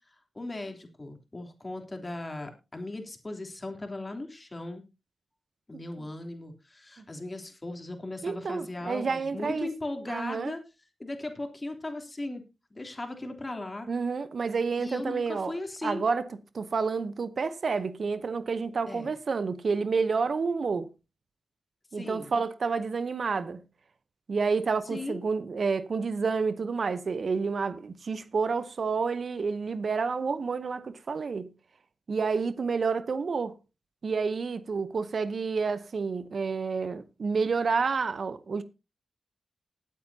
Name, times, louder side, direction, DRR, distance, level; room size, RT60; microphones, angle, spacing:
voice 1, 0.1-4.8 5.7-10.6 11.0-12.4 12.7-13.9 14.8-16.0 18.9-19.1 21.9-22.3 24.9-25.2, left 2 dB, 35° left, 3.2 m, -38 dB
voice 2, 8.2-9.7 10.1-10.5 13.9-15.5 15.8-16.3 16.5-20.9 21.9-23.6 24.3-31.5 32.1-33.5 34.0-38.6, right 5 dB, 65° right, 0.8 m, -29 dB
19.5 x 8.4 x 2.8 m
cardioid pair, 45°, 0 cm